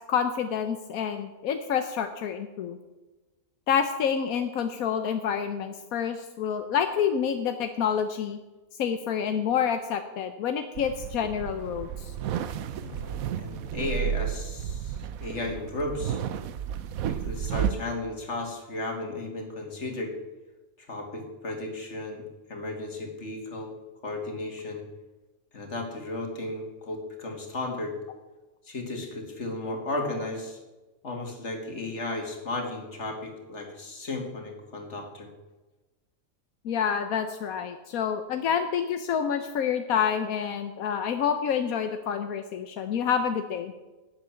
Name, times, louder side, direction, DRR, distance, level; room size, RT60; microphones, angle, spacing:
voice 1, 0.1-2.8 3.7-8.4 8.8-12.1 36.6-43.7, left 7 dB, 85° left, 7 dB, 1.3 m, -28 dB
sound 1, 10.8-17.7, right 9 dB, 80° right, 1.2 m, -32 dB
voice 2, 12.8-16.2 17.1-20.1 20.8-22.2 22.5-23.7 24.0-24.8 25.5-28.0 28.6-30.6 31.0-35.3, left 2 dB, 55° left, 3 dB, 2.6 m, -34 dB
12.0 x 7.8 x 8.6 m, 1.1 s
omnidirectional pair, 1.4 m